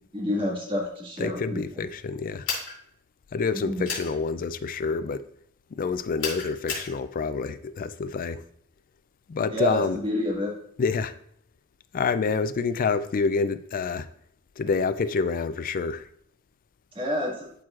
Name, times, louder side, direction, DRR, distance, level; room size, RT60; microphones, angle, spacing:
voice 1, 0.1-1.8 3.5-3.8 9.5-10.5 16.9-17.5, left 1 dB, 25° right, 1.8 m, -28 dB
voice 2, 1.2-2.5 3.3-5.3 5.7-8.4 9.3-10.0 10.8-11.2 11.9-14.1 14.6-16.1, left 5 dB, 40° left, 0.3 m, -27 dB
sound 1, 2.4-2.7 3.8-4.1 6.2-6.9, left 5 dB, 60° left, 2.4 m, -31 dB
12.0 x 4.6 x 2.4 m
head